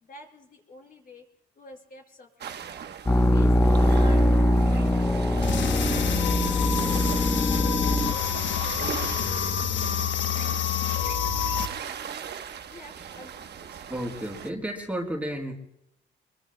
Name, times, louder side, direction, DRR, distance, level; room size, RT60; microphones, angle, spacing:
voice 1, 0.0-1.2 1.6-2.5 3.2-4.2 4.5-5.1 5.6-8.4 8.9-9.1 9.4-9.6 11.0-11.1 11.8-12.0 12.7-13.7, left 2 dB, 45° left, 1 dB, 4.8 m, -49 dB
sound 1, 2.4-14.5, right 8 dB, 55° right, 1.0 m, -40 dB
sound 2, 3.1-8.1, left 1 dB, 15° left, 0.9 m, -22 dB
sound 3, 5.4-11.7, left 7 dB, 70° left, 1.1 m, -27 dB
voice 2, 13.9-15.5, right 1 dB, 5° right, 1 dB, 3.7 m, -32 dB
24.5 x 24.0 x 2.2 m, 0.79 s
cardioid pair, 90°, 20 cm